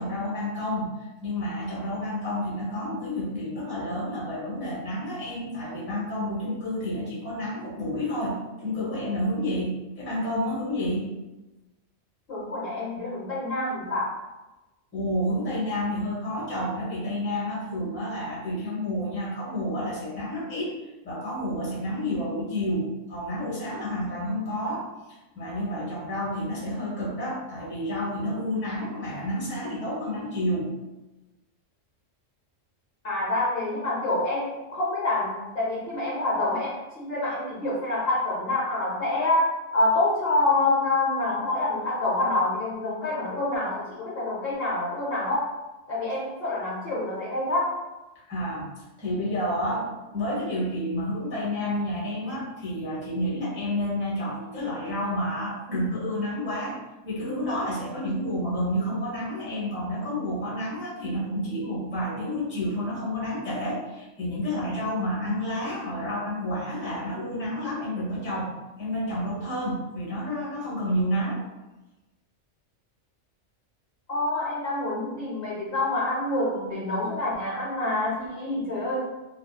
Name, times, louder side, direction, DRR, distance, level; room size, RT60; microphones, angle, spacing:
voice 1, 0.0-11.1 14.9-20.7 21.0-24.9 25.3-30.7 48.3-48.7 49.0-56.8 57.0-68.5 68.8-71.4, equal, 10° left, -8 dB, 0.7 m, -30 dB
voice 2, 12.3-14.2 33.0-39.5 39.7-45.5 45.9-47.8 74.1-79.0, left 2 dB, 55° left, -7 dB, 0.8 m, -27 dB
2.6 x 2.3 x 2.2 m, 1.1 s
omnidirectional pair, 1.3 m